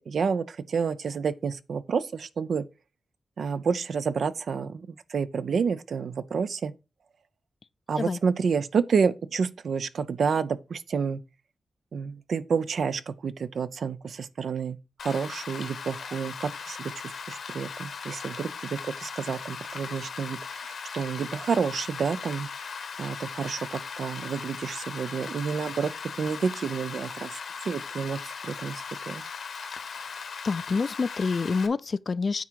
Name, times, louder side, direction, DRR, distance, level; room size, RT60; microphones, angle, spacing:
voice 1, 0.1-2.7 3.4-6.7 7.9-11.2 11.9-14.8 15.0-22.5 23.0-27.4 27.6-29.2, right 6 dB, 75° right, 0.5 m, -29 dB
Rain, 15.0-31.7, left 5 dB, 80° left, 1.2 m, -38 dB
voice 2, 29.9-32.4, left 4 dB, 50° left, 0.4 m, -28 dB
9.2 x 3.7 x 4.6 m
cardioid pair, 80°, 0 cm